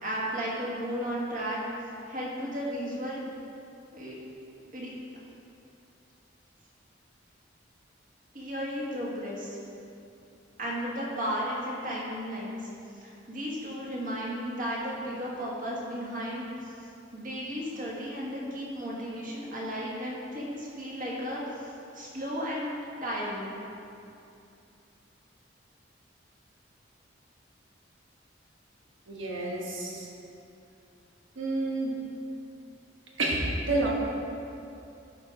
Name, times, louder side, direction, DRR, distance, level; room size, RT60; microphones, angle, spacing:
voice 1, 0.0-1.6 2.1-3.2 3.9-4.2 4.7-5.2 8.3-9.6 10.6-12.7 13.0-16.7 17.1-21.7 21.9-23.6, equal, 45° right, -5 dB, 1.6 m, -34 dB
voice 2, 29.1-30.1 31.3-32.0 33.2-33.9, right 2 dB, 90° right, -2 dB, 1.4 m, -29 dB
11.5 x 4.7 x 3.8 m, 2.7 s
head